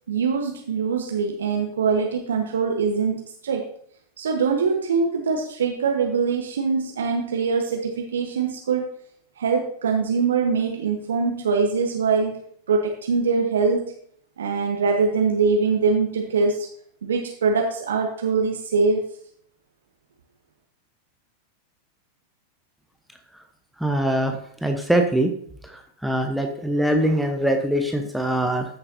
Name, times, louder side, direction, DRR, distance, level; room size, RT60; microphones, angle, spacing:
voice 1, 0.1-3.7 4.2-8.9 9.4-12.4 12.7-13.9 14.4-16.7 17.0-19.0, right 5 dB, 65° right, 2 dB, 1.1 m, -23 dB
voice 2, 23.8-24.4 24.6-25.3 26.0-28.7, right 1 dB, ahead, 4 dB, 1.0 m, -22 dB
14.0 x 6.8 x 2.7 m, 0.64 s
figure-of-eight pair, 90°, 0 cm